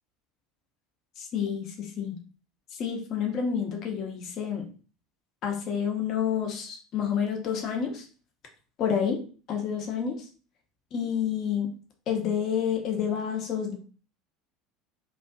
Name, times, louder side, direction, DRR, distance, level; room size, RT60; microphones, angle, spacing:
voice 1, 1.2-2.2 2.8-4.7 5.4-8.1 8.8-9.2 9.5-10.3 10.9-11.7 12.1-13.7, left 7 dB, 45° left, 1 dB, 0.7 m, -29 dB
2.6 x 2.3 x 2.3 m, 0.38 s
figure-of-eight pair, 70°, 0 cm